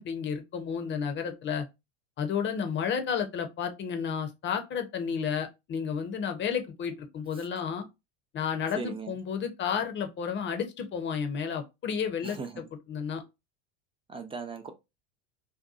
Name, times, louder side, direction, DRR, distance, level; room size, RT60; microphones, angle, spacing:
voice 1, 0.0-1.7 2.2-7.8 8.3-12.4 12.9-13.2, left 7 dB, 30° left, 0.6 m, -31 dB
voice 2, 8.7-9.1 12.2-12.6 14.1-14.7, right 5 dB, 15° right, 0.4 m, -38 dB
2.7 x 2.2 x 2.3 m
hypercardioid pair, 90°, 37 cm